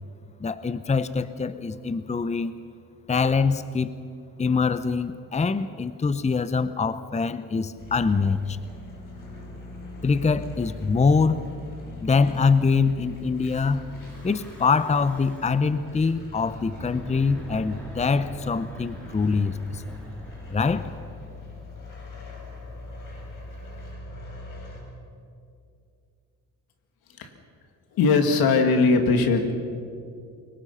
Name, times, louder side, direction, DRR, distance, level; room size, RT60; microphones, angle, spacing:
voice 1, 0.4-2.5 3.1-3.9 4.4-8.6 10.0-11.5 12.0-13.9 14.2-19.9 20.5-20.9, left 4 dB, 20° left, 14 dB, 0.8 m, -24 dB
sound 1, 7.8-24.8, left 2 dB, 60° left, 6.1 m, -42 dB
Breathing / Wind, 13.8-15.7 16.6-22.0, equal, 5° left, 5.3 m, -44 dB
voice 2, 27.9-29.6, left 4 dB, 80° left, 6 dB, 2.4 m, -20 dB
29.0 x 19.0 x 5.7 m, 2.4 s
cardioid pair, 80°, 36 cm